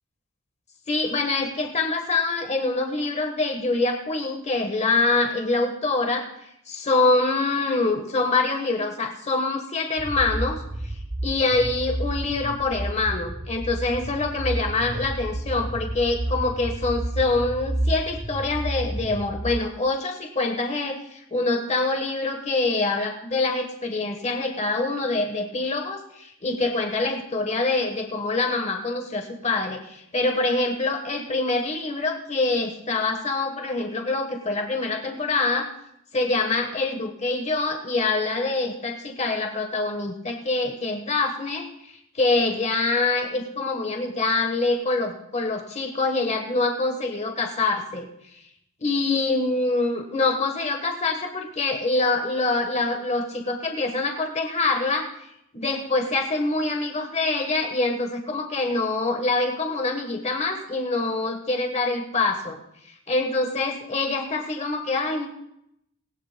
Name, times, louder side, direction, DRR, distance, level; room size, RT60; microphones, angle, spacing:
voice 1, 0.9-10.6 11.2-35.7 36.1-48.1 48.8-55.3 55.5-62.6 63.1-65.3, left 3 dB, 30° left, 4 dB, 1.2 m, -25 dB
sound 1, 10.0-19.6, right 1 dB, 20° right, 0.5 m, -30 dB
19.0 x 18.0 x 2.2 m, 0.77 s
head